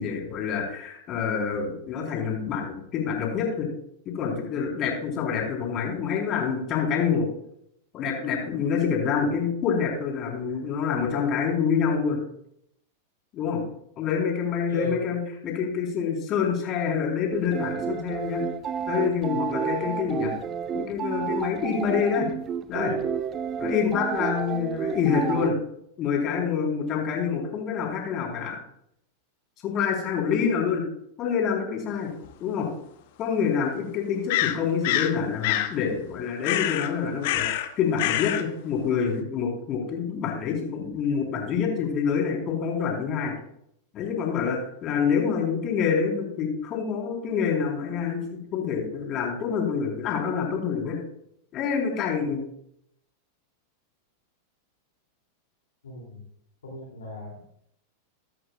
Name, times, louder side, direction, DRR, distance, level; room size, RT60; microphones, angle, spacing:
voice 1, 0.0-3.7 4.1-7.3 7.9-12.2 13.3-13.6 14.0-18.4 18.9-20.3 20.7-22.3 22.7-22.9 23.6-25.6 26.0-28.6 29.6-30.8 31.2-32.1 32.4-32.7 33.2-43.3 43.9-51.0 51.5-52.4, left 6 dB, 35° left, 0 dB, 4.1 m, -27 dB
voice 2, 14.7-15.0 55.8-56.2 56.6-57.4, left 1 dB, 65° left, -2 dB, 3.0 m, -36 dB
sound 1, 17.3-25.5, right 8 dB, 25° right, 0.6 m, -30 dB
sound 2, 32.2-32.3 34.3-35.1 35.4-35.7 36.4-36.9 37.2-37.7 38.0-38.4, left 13 dB, 50° left, 1.0 m, -26 dB
14.0 x 12.0 x 2.4 m, 0.73 s
figure-of-eight pair, 90°, 0 cm